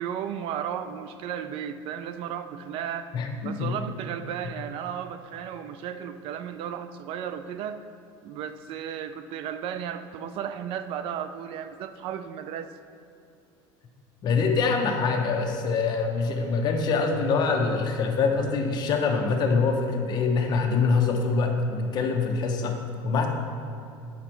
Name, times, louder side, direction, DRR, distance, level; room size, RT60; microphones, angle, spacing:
voice 1, 0.0-3.1 3.4-7.9 8.2-12.7, right 9 dB, 55° right, 10 dB, 0.4 m, -34 dB
voice 2, 3.1-3.7 14.2-22.8 23.0-23.3, left 4 dB, 40° left, 3 dB, 0.9 m, -24 dB
8.1 x 5.2 x 4.4 m, 2.6 s
cardioid pair, 140°, 11 cm